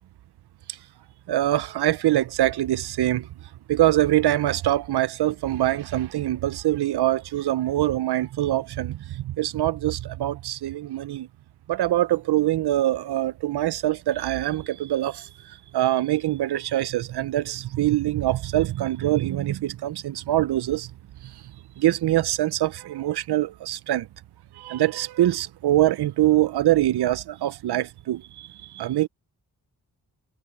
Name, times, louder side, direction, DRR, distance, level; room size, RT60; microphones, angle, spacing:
voice 1, 1.3-3.3 3.7-11.3 11.7-20.9 21.8-24.1 24.6-29.1, right 14 dB, 80° right, 0.6 m, -24 dB
cardioid pair, 85°, 38 cm